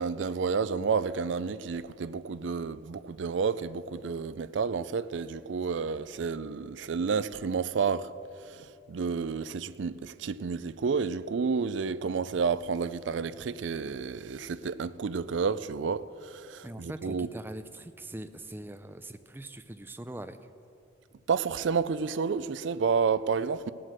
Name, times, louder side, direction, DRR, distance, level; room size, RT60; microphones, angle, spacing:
voice 1, 0.0-8.1 8.4-17.3 21.3-23.7, right 5 dB, 70° right, 0.4 m, -30 dB
voice 2, 16.6-20.4, right 1 dB, 10° right, 0.4 m, -42 dB
17.5 x 7.7 x 6.5 m
head